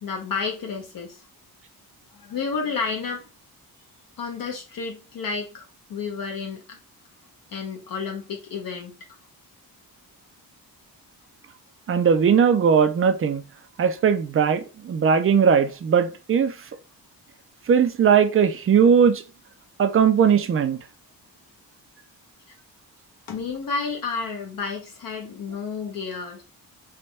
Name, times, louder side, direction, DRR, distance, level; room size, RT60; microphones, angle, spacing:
voice 1, 0.0-1.3 2.1-3.3 4.2-6.8 7.5-9.0 22.5-22.6 23.3-26.4, left 5 dB, 60° left, 0.8 m, -31 dB
voice 2, 11.9-13.4 13.8-16.5 17.7-19.2 19.8-20.8, right 7 dB, 35° right, 0.4 m, -19 dB
3.3 x 2.2 x 4.0 m
wide cardioid pair, 135°, 37 cm